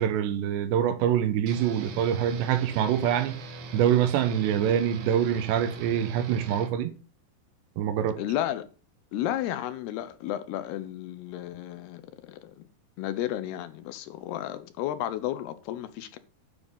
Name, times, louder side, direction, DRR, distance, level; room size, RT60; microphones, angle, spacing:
voice 1, 0.0-3.3 3.7-6.9 7.8-8.2, right 9 dB, 80° right, 3.2 m, -25 dB
sound 1, 1.5-6.7, right 2 dB, 60° right, 3.0 m, -41 dB
voice 2, 8.2-8.7 9.1-12.7 13.0-16.2, left 12 dB, 75° left, 2.6 m, -33 dB
10.5 x 7.0 x 5.3 m
omnidirectional pair, 5.0 m